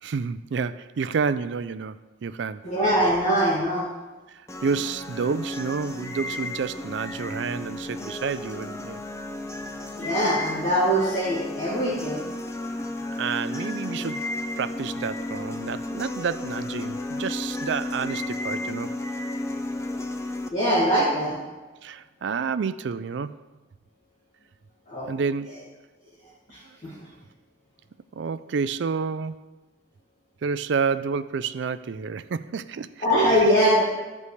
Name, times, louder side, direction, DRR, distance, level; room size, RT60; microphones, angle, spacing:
voice 1, 0.0-2.7 4.3-9.0 12.7-12.8 13.1-14.3 14.6-19.0 21.8-23.4 25.1-25.7 26.6-26.8 28.1-29.4 30.4-33.0 33.3-33.5, right 5 dB, 70° right, 14 dB, 0.4 m, -29 dB
voice 2, 2.6-3.9 10.0-12.2 20.5-21.4 24.9-25.1 26.5-26.9 33.0-33.8, equal, 40° left, -9 dB, 1.8 m, -22 dB
sound 1, 4.5-20.5, left 2 dB, 15° left, 0.5 m, -33 dB
14.0 x 5.3 x 3.2 m, 1.2 s
head